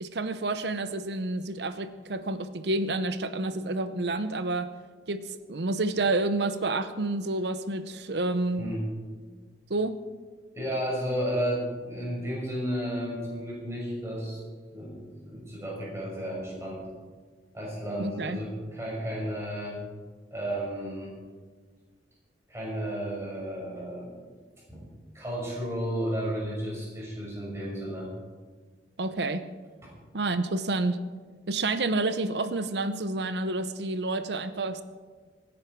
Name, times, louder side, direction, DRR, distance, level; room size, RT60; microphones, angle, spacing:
voice 1, 0.0-4.7 5.1-8.7 9.7-9.9 18.0-18.4 29.0-29.4 30.1-31.0 31.5-34.8, right 2 dB, 65° right, 11 dB, 0.8 m, -29 dB
voice 2, 8.5-8.9 10.5-14.4 14.7-16.9 17.5-19.8 20.3-21.1 22.5-24.1 24.7-24.8 25.1-28.1 29.8-29.9, equal, 15° right, -4 dB, 5.9 m, -33 dB
25.5 x 10.5 x 4.7 m, 1.5 s
head